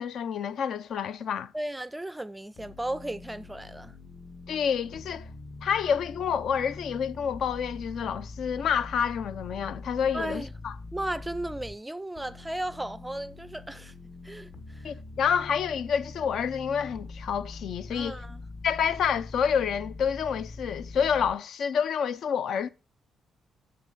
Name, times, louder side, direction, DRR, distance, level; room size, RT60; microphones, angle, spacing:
voice 1, 0.0-1.5 4.5-5.3 5.6-10.7 14.8-18.2 18.6-22.7, left 7 dB, 65° left, 0.5 m, -28 dB
voice 2, 1.5-3.9 10.1-10.5 10.9-13.9 14.2-14.9 17.9-18.4, right 1 dB, 10° right, 0.4 m, -35 dB
sound 1, 2.6-11.7 12.1-21.3, left 3 dB, 45° left, 1.2 m, -43 dB
7.4 x 6.6 x 5.4 m
cardioid pair, 140°, 0 cm